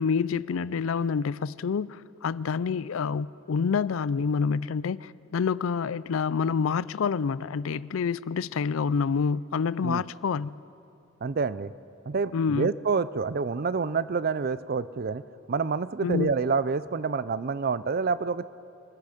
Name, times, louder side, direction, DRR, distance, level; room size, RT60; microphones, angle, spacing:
voice 1, 0.0-10.5 12.3-12.7 16.0-16.3, left 5 dB, 70° left, 0.4 m, -27 dB
voice 2, 11.2-11.7 12.1-15.2 15.5-18.5, right 5 dB, 45° right, 0.5 m, -27 dB
25.5 x 20.5 x 5.1 m
head